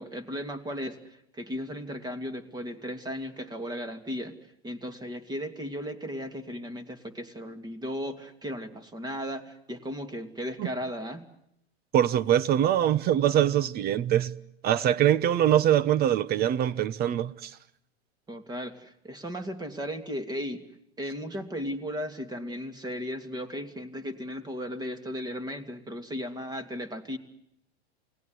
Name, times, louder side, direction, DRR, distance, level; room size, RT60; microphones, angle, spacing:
voice 1, 0.0-4.4 4.6-11.3 18.3-20.6 21.0-27.2, equal, 10° right, 2.7 m, -36 dB
voice 2, 11.9-14.3 14.6-17.5, right 11 dB, 30° right, 1.0 m, -23 dB
28.5 x 19.0 x 9.5 m
supercardioid pair, 130°, 32 cm